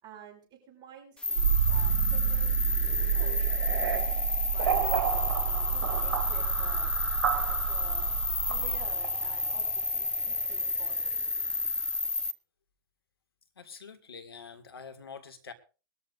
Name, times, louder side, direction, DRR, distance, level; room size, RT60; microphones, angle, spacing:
voice 1, 0.0-2.5 2.9-4.1 4.4-5.2 5.7-6.9 7.3-8.1 8.5-11.2, right 7 dB, 35° right, 0 dB, 6.2 m, -49 dB
sound 1, 1.2-12.3, left 3 dB, 10° left, 0.7 m, -31 dB
sound 2, 1.4-11.4, right 10 dB, 70° right, 2.4 m, -30 dB
voice 2, 13.6-15.5, left 5 dB, 90° left, 7 dB, 2.1 m, -46 dB
21.5 x 13.5 x 2.7 m, 0.33 s
hypercardioid pair, 100°, 12 cm